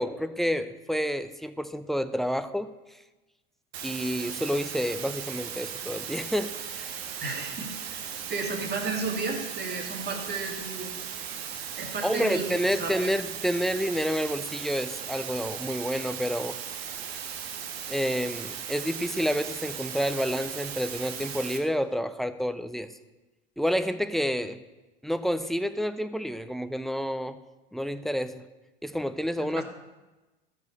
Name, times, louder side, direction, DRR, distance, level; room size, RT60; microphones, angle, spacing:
voice 1, 0.0-2.7 3.8-6.9 12.0-16.6 17.1-17.2 17.9-22.9 23.6-24.6 25.0-27.4 27.7-28.4 28.8-29.6, equal, ahead, 11 dB, 0.7 m, -29 dB
sound 1, 3.7-21.6, right 8 dB, 75° right, 1.5 m, -37 dB
voice 2, 7.2-10.9 11.3-11.4 11.8-13.1 29.4-29.6, right 3 dB, 35° right, 2 dB, 2.8 m, -33 dB
13.0 x 5.2 x 8.5 m, 1.1 s
hypercardioid pair, 85°, 31 cm